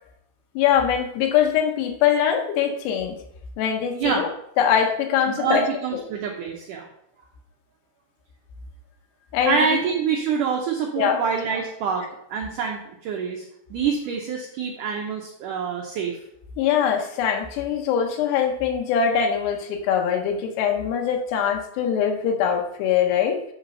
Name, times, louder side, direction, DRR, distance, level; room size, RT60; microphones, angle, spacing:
voice 1, 0.6-3.2 3.6-4.3 4.6-5.6 9.3-9.6 11.0-11.2 16.6-23.4, left 8 dB, 85° left, 3 dB, 3.0 m, -22 dB
voice 2, 5.3-6.9 9.5-13.5 13.7-16.2, right 6 dB, 80° right, 0 dB, 1.8 m, -26 dB
7.9 x 4.1 x 5.6 m, 0.76 s
omnidirectional pair, 4.7 m